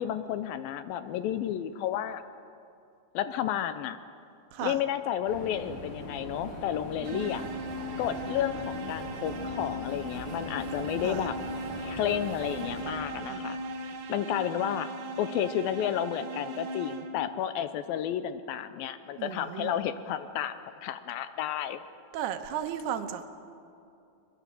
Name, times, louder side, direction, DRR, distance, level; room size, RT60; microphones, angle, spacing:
voice 1, 0.0-2.2 3.1-4.0 4.6-7.4 8.0-11.4 11.8-13.6 14.1-14.9 15.2-20.6 20.8-21.8, left 10 dB, 80° left, 11 dB, 2.3 m, -31 dB
voice 2, 4.5-4.8 7.0-7.3 11.0-11.3 13.3-13.6 19.2-19.8 22.1-23.2, right 10 dB, 85° right, 8 dB, 3.0 m, -35 dB
sound 1, 5.3-12.8, equal, 50° left, 6.2 m, -41 dB
sound 2, 7.0-17.4, right 1 dB, 60° right, 2.7 m, -38 dB
23.0 x 21.5 x 7.7 m, 2.6 s
omnidirectional pair, 4.6 m